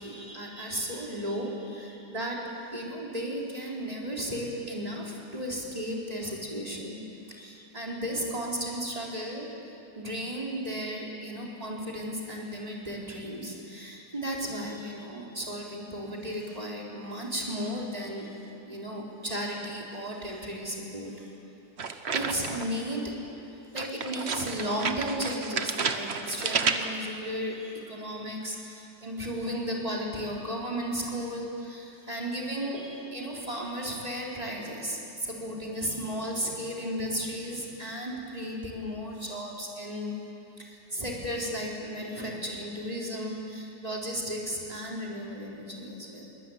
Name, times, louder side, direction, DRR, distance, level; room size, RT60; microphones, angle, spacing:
voice 1, 0.0-2.4 2.7-7.0 7.3-9.5 10.0-18.3 18.7-21.3 22.1-23.1 23.7-40.1 40.6-46.3, equal, 20° right, -2 dB, 4.0 m, -34 dB
sound 1, 21.8-22.8 23.8-27.1, right 5 dB, 45° right, 1.2 m, -31 dB
23.0 x 19.0 x 9.4 m, 2.8 s
omnidirectional pair, 1.7 m